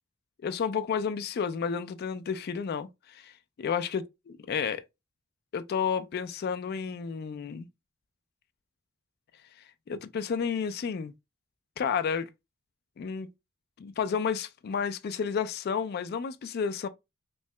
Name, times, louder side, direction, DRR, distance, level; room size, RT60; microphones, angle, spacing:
voice 1, 0.4-4.0 4.5-4.8 5.5-7.7 9.9-11.1 11.8-12.3 13.0-13.3 13.8-16.9, left 6 dB, 50° left, 0.3 m, -31 dB
3.1 x 2.8 x 3.2 m
head